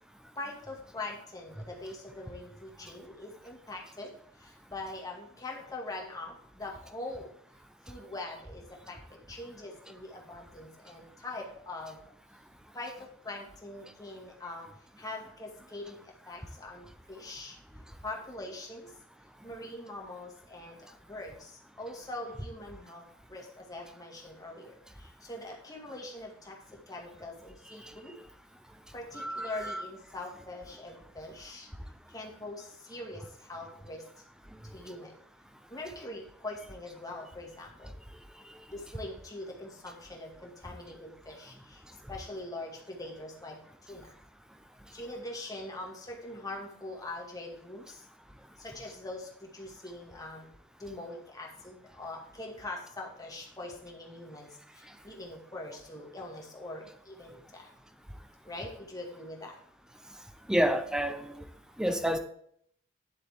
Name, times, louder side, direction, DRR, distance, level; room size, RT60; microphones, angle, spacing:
voice 1, 0.4-4.1 4.7-7.3 7.9-9.0 9.3-12.0 12.7-12.9 13.2-14.7 15.0-16.0 16.3-17.6 18.0-18.9 19.4-20.8 21.1-21.5 21.8-23.0 23.3-24.7 25.2-26.6 26.9-28.1 28.9-31.7 32.1-32.6 32.9-33.2 33.5-34.0 34.7-35.1 35.7-37.7 38.7-41.5 42.1-43.6 43.9-44.1 44.9-47.9 48.6-50.5 50.8-54.5 55.0-57.6 58.4-59.5, left 2 dB, 20° left, -1 dB, 2.2 m, -42 dB
voice 2, 29.2-29.8 60.5-61.4 61.8-62.2, equal, 5° right, 8 dB, 0.9 m, -29 dB
10.5 x 7.6 x 3.7 m, 0.66 s
head